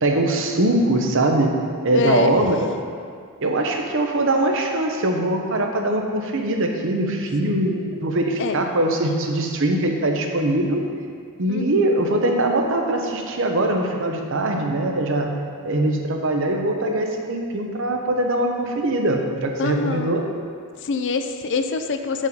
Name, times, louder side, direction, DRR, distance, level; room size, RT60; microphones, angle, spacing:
voice 1, 0.0-1.6 1.8-2.7 3.4-10.8 11.4-15.3 15.6-20.2, right 1 dB, 60° right, 3 dB, 0.8 m, -22 dB
voice 2, 1.9-2.4 2.6-2.8 7.4-7.7 8.4-8.6 11.5-11.8 19.6-20.2 20.8-22.3, left 4 dB, 55° left, 7 dB, 0.4 m, -25 dB
5.3 x 5.3 x 6.4 m, 2.2 s
head